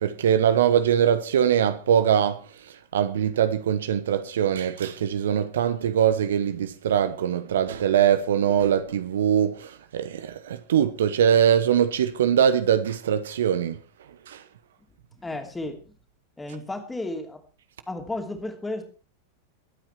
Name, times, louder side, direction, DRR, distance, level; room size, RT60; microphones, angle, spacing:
voice 1, 0.0-2.4 2.9-13.8 14.3-14.4, right 9 dB, 60° right, 1.1 m, -22 dB
voice 2, 15.2-15.8 16.4-17.4 17.9-18.8, left 2 dB, 10° left, 3.0 m, -33 dB
22.5 x 8.9 x 4.4 m
figure-of-eight pair, 90°, 0 cm